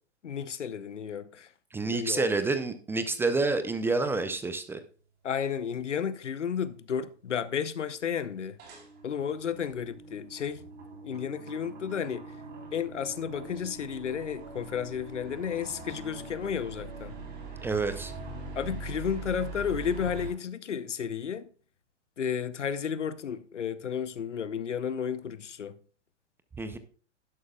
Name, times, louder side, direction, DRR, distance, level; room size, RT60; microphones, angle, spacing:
voice 1, 0.2-1.5 1.8-2.3 5.2-8.6 9.0-10.6 11.0-12.4 12.7-17.2 18.5-21.5 22.2-25.8, left 7 dB, 85° left, 0.9 m, -32 dB
voice 2, 1.7-4.8 17.6-18.1 26.6-26.8, right 3 dB, 5° right, 0.5 m, -28 dB
sound 1, 8.6-20.3, right 3 dB, 30° right, 3.8 m, -42 dB
11.0 x 11.0 x 2.3 m
hypercardioid pair, 115°, 35 cm